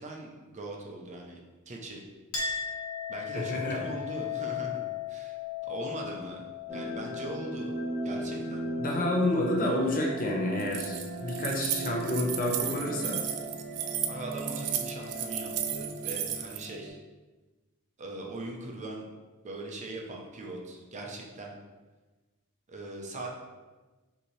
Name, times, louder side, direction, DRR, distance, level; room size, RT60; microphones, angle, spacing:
voice 1, 0.0-1.4 1.7-2.0 3.1-5.4 5.7-7.8 8.0-8.7 14.1-17.0 18.0-19.1 19.4-21.6 22.7-23.3, right 2 dB, 35° right, 0 dB, 0.6 m, -40 dB
Chink clink, 2.3-9.4, left 8 dB, 80° left, 1.1 m, -37 dB
voice 2, 3.3-3.8 8.8-13.2, left 1 dB, 40° left, 0 dB, 0.8 m, -29 dB
sound 1, 6.7-16.9, right 1 dB, 15° right, 1.0 m, -37 dB
Keys jangling, 10.6-16.7, right 10 dB, 90° right, 0.4 m, -34 dB
5.5 x 2.7 x 3.1 m, 1.2 s
head